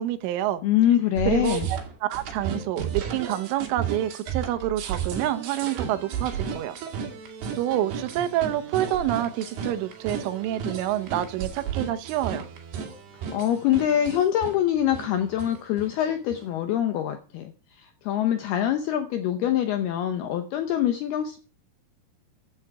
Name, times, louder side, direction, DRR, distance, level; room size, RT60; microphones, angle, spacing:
voice 1, 0.0-0.6 1.3-6.8 7.6-12.5, right 12 dB, 80° right, 3.4 m, -27 dB
voice 2, 0.6-1.7 13.3-17.5 17.8-21.4, left 11 dB, 75° left, 2.3 m, -24 dB
sound 1, 1.1-16.5, right 7 dB, 60° right, 3.9 m, -34 dB
15.0 x 10.0 x 4.8 m
omnidirectional pair, 5.7 m